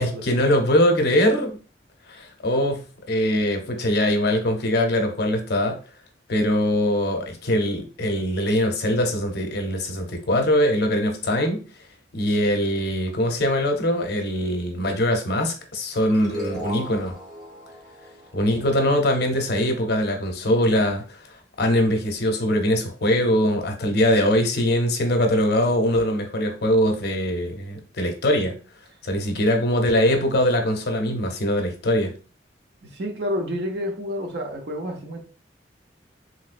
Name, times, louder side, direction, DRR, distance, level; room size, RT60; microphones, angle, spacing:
voice 1, 0.0-1.6 2.1-5.8 6.3-11.6 12.1-17.1 18.3-21.0 21.6-28.6 29.0-32.1, equal, 60° left, 0.7 m, -22 dB
sound 1, 16.1-19.3, equal, 45° right, 1.0 m, -37 dB
voice 2, 32.8-35.2, equal, 65° right, 0.7 m, -29 dB
3.1 x 3.0 x 2.5 m
head